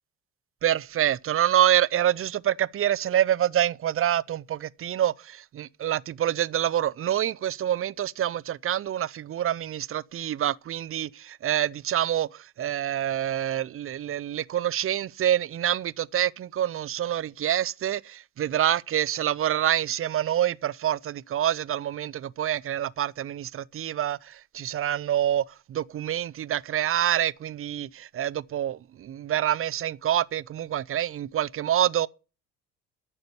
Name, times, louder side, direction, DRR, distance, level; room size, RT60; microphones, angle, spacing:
voice 1, 0.6-32.1, right 11 dB, 30° right, 0.5 m, -26 dB
13.0 x 6.6 x 8.2 m
figure-of-eight pair, 45°, 43 cm